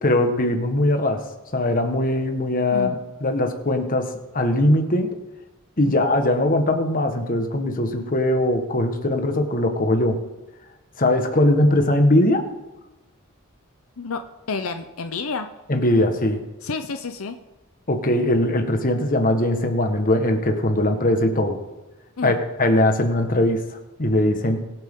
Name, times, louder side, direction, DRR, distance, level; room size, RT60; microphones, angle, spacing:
voice 1, 0.0-1.2 1.5-2.9 3.2-5.1 5.8-10.2 11.0-12.4 15.7-16.4 17.9-21.6 22.2-23.7 24.0-24.6, left 1 dB, 40° left, 5 dB, 1.4 m, -20 dB
voice 2, 14.5-15.5 16.6-17.4 22.2-22.4, left 4 dB, 85° left, 8 dB, 0.7 m, -30 dB
22.5 x 7.9 x 3.8 m, 1.1 s
head